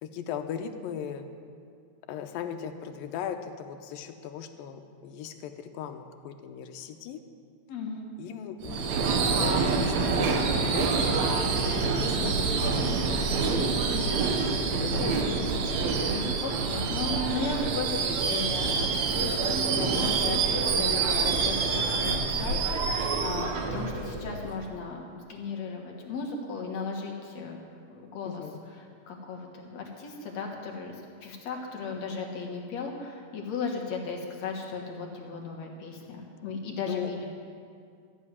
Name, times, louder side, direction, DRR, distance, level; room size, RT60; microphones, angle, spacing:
voice 1, 0.0-1.3 2.1-7.2 8.2-11.0 11.6-13.7 14.8-15.9 28.3-28.6 36.9-37.1, left 8 dB, 85° left, 7 dB, 2.5 m, -38 dB
voice 2, 7.7-8.0 12.0-12.3 15.0-27.6 27.8-37.3, left 4 dB, 60° left, 0 dB, 2.5 m, -36 dB
Subway metro underground / Screech, 8.6-24.6, right 4 dB, 65° right, 2.1 m, -27 dB
13.5 x 8.1 x 9.6 m, 2.3 s
omnidirectional pair, 4.0 m